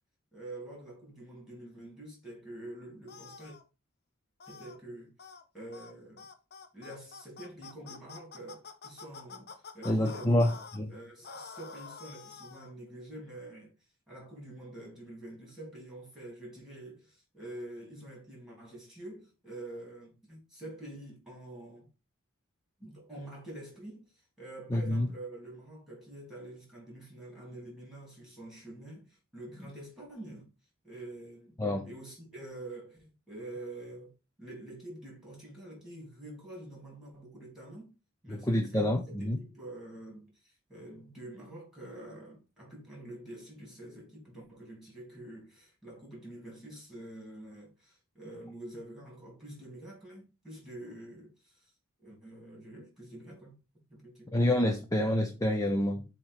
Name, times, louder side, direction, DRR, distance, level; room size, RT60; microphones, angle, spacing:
voice 1, 0.3-3.6 4.5-5.1 5.5-6.3 6.7-10.6 10.9-13.7 14.1-21.9 22.8-30.5 30.8-31.6 31.8-34.1 34.4-37.9 38.2-51.7 52.0-53.6 53.9-54.5, right 1 dB, ahead, 3.3 m, -47 dB
sound 1, 3.1-3.6 4.4-4.8 5.2-5.4 5.7-5.9 6.2-10.8 11.2-12.7, left 5 dB, 50° left, 0.8 m, -47 dB
voice 2, 9.8-10.5 10.8-10.9 24.7-25.1 31.6-31.9 38.3-39.4 54.3-56.0, left 1 dB, 15° left, 0.6 m, -27 dB
7.3 x 3.0 x 4.8 m
head